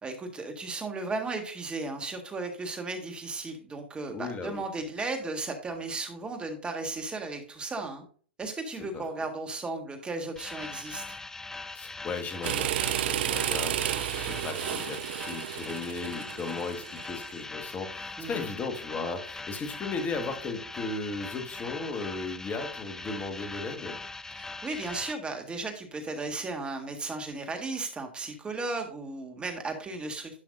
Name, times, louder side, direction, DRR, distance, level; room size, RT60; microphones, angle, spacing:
voice 1, 0.0-8.0 8.4-11.0 18.2-18.5 24.4-30.4, right 3 dB, 15° right, 5 dB, 1.6 m, -35 dB
voice 2, 4.1-4.6 8.9-9.0 11.7-24.0, left 4 dB, 25° left, 6 dB, 1.5 m, -36 dB
sound 1, 10.4-25.1, left 3 dB, 10° left, 0.4 m, -41 dB
sound 2, 12.4-17.3, right 13 dB, 60° right, 0.3 m, -32 dB
11.0 x 5.7 x 2.6 m, 0.42 s
hypercardioid pair, 110°, 6 cm